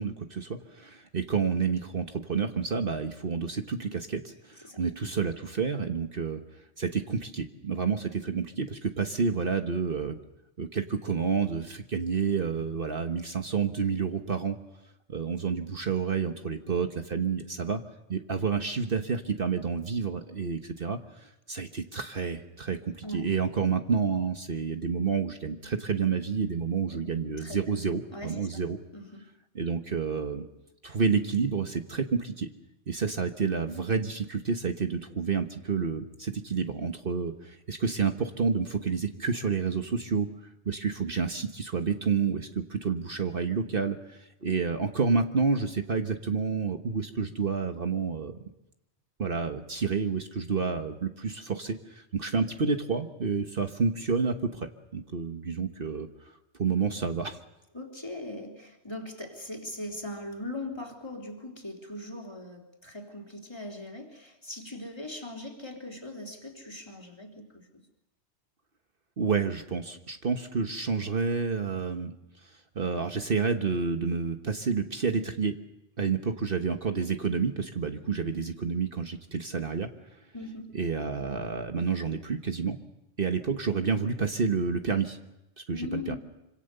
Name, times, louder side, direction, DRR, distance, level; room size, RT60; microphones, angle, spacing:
voice 1, 0.0-6.4 6.8-10.2 10.6-14.6 15.1-17.8 18.1-28.8 29.5-30.5 30.8-32.5 32.9-40.3 40.6-48.4 49.2-56.1 56.6-57.4 69.2-72.1 72.4-75.5 76.0-79.9 80.7-82.8 83.2-85.2 85.7-86.2, right 5 dB, 50° right, 6 dB, 1.5 m, -29 dB
voice 2, 27.4-28.6 28.9-29.3 57.7-67.8 80.3-80.8 85.7-86.2, left 1 dB, 20° left, 2 dB, 3.5 m, -40 dB
26.0 x 26.0 x 6.7 m, 0.91 s
omnidirectional pair, 1.2 m